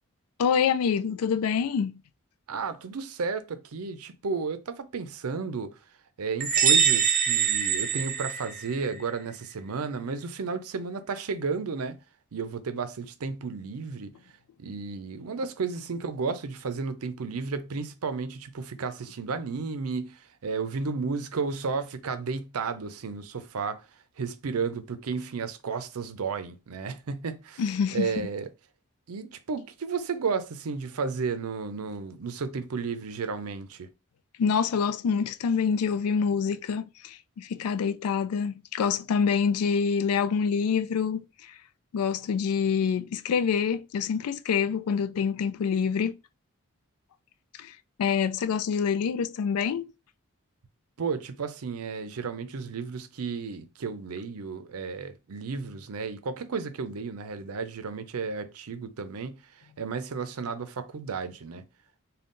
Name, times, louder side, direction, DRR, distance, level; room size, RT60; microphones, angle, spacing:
voice 1, 0.4-1.9 27.6-28.1 34.4-41.2 41.9-46.2 47.6-47.7 48.0-49.9, left 6 dB, 80° left, 0.3 m, -26 dB
voice 2, 2.5-5.8 6.2-12.0 12.3-14.1 14.6-23.8 24.2-28.5 29.1-33.9 51.0-61.6, right 5 dB, 80° right, 0.5 m, -33 dB
sound 1, 6.4-9.0, right 7 dB, 35° right, 0.8 m, -24 dB
3.8 x 2.3 x 3.6 m
head